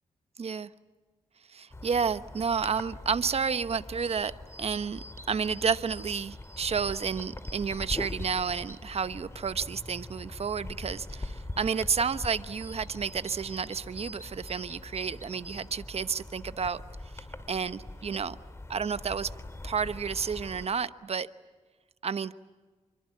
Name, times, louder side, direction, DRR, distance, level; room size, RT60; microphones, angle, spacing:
voice 1, 0.4-0.7 1.5-18.4 18.7-19.3 19.6-21.3 22.0-22.3, right 6 dB, 55° right, 13 dB, 1.0 m, -31 dB
sound 1, 1.7-20.7, left 2 dB, 20° left, 2.2 m, -42 dB
27.0 x 24.0 x 8.4 m, 1.3 s
cardioid pair, 75°, 13 cm